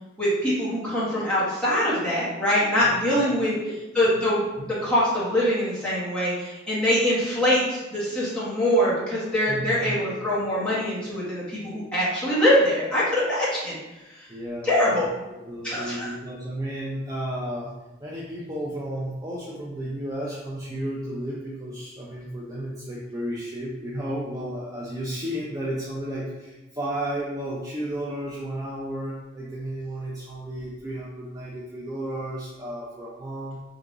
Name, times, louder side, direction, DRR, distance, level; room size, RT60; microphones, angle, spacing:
voice 1, 0.2-3.5 3.9-13.7 14.1-14.3 14.6-15.1 15.6-16.1, equal, 5° left, -10 dB, 1.4 m, -23 dB
voice 2, 2.8-3.8 9.5-10.0 14.3-17.7 18.0-33.6, right 1 dB, 20° right, -6 dB, 0.4 m, -33 dB
3.7 x 2.8 x 3.8 m, 1.1 s
head